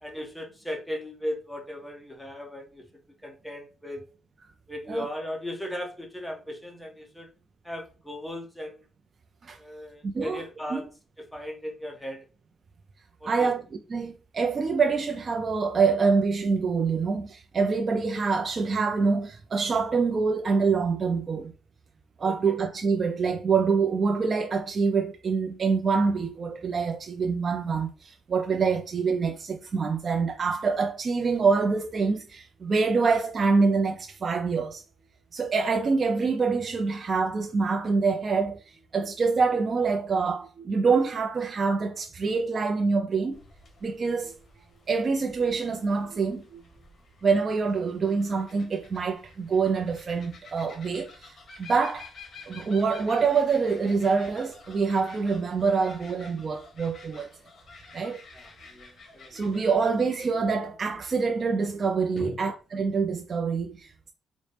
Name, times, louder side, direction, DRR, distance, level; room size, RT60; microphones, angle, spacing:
voice 1, 0.0-2.9 3.2-4.0 4.7-7.3 7.6-8.8 9.6-10.9 11.2-12.2 13.2-13.5 22.2-22.3 58.3-59.3 62.1-62.4, left 1 dB, 5° left, 1.0 m, -37 dB
voice 2, 10.0-10.4 10.7-10.8 13.2-21.5 22.2-34.8 35.3-38.6 38.9-43.4 43.8-44.4 44.9-46.6 47.2-51.3 51.6-52.1 52.5-57.3 57.9-58.2 59.3-64.1, right 4 dB, 40° right, 0.4 m, -25 dB
sound 1, 43.3-59.8, left 4 dB, 50° left, 1.0 m, -51 dB
4.1 x 2.0 x 3.2 m
cardioid pair, 90°, 0 cm